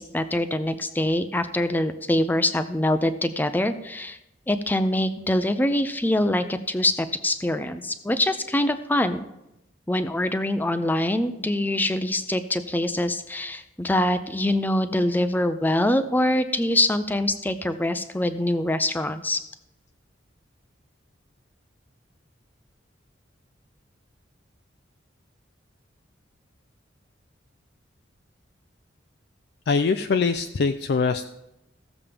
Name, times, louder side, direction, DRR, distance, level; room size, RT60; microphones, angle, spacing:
voice 1, 0.0-4.2 4.5-9.2 9.9-19.4, left 1 dB, 10° left, 9 dB, 0.5 m, -24 dB
voice 2, 29.7-31.2, left 4 dB, 60° left, 7 dB, 0.4 m, -23 dB
16.0 x 7.2 x 3.4 m, 0.87 s
head